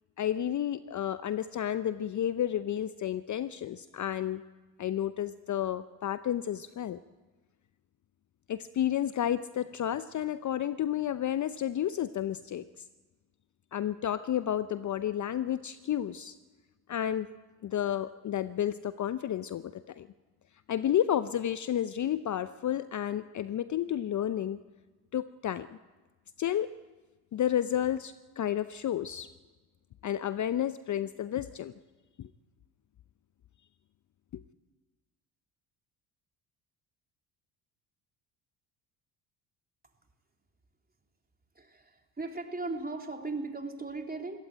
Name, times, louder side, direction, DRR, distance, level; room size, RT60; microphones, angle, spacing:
voice 1, 0.2-4.4 4.8-7.0 8.5-12.8 13.7-16.4 16.9-17.3 17.6-20.1 20.7-24.6 25.1-25.8 26.4-26.7 27.3-29.3 30.0-31.7 32.2-32.3 34.3-34.4, left 10 dB, 40° left, 14 dB, 0.7 m, -31 dB
voice 2, 41.5-44.4, right 3 dB, 20° right, 3 dB, 3.4 m, -37 dB
21.5 x 17.0 x 9.0 m, 1.3 s
hypercardioid pair, 60°, 48 cm